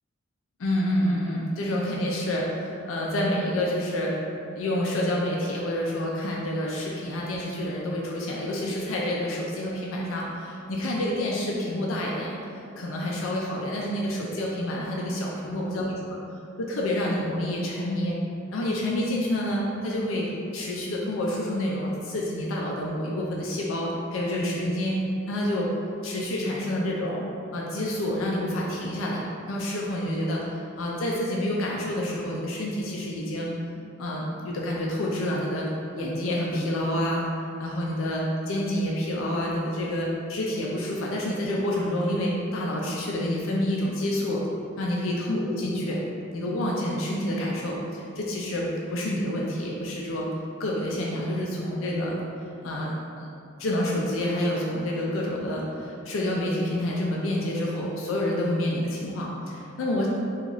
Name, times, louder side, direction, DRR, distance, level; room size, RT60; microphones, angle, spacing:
voice 1, 0.6-4.2 4.6-12.4 12.8-15.9 16.1-16.2 16.6-18.2 18.5-25.7 26.0-27.2 27.5-30.4 30.8-33.5 34.0-35.7 36.0-44.4 44.8-46.0 46.3-50.3 50.6-52.2 52.6-53.3 53.6-60.1, left 1 dB, 75° left, -3 dB, 0.4 m, -28 dB
2.9 x 2.4 x 3.8 m, 2.6 s
head